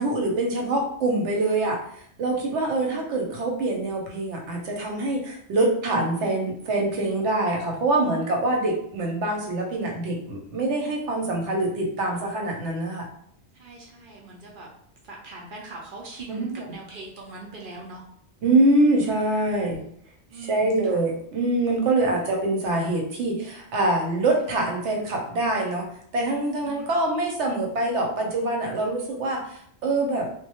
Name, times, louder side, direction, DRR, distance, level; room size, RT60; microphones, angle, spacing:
voice 1, 0.0-1.8 2.2-13.1 16.3-16.5 18.4-19.8 20.5-25.9 26.1-30.3, right 2 dB, 85° right, 0 dB, 0.9 m, -24 dB
voice 2, 12.0-12.3 13.5-14.7 15.0-18.1 19.5-19.9 20.3-21.1 22.0-22.4 26.6-27.0 28.8-28.9, right 3 dB, 60° right, -2 dB, 0.6 m, -42 dB
2.1 x 2.0 x 2.8 m, 0.67 s
omnidirectional pair, 1.2 m